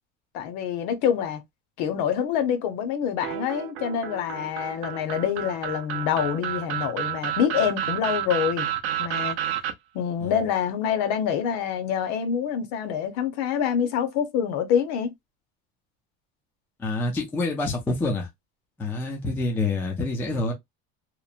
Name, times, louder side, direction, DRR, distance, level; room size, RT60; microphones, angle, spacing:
voice 1, 0.3-1.4 1.8-8.7 9.0-9.4 9.9-15.1, left 8 dB, 55° left, 0.7 m, -26 dB
sound 1, 3.2-9.7, right 11 dB, 45° right, 0.5 m, -30 dB
voice 2, 16.8-18.3 18.8-20.5, left 2 dB, 5° left, 0.3 m, -27 dB
2.9 x 2.1 x 2.4 m
cardioid pair, 180°, 30 cm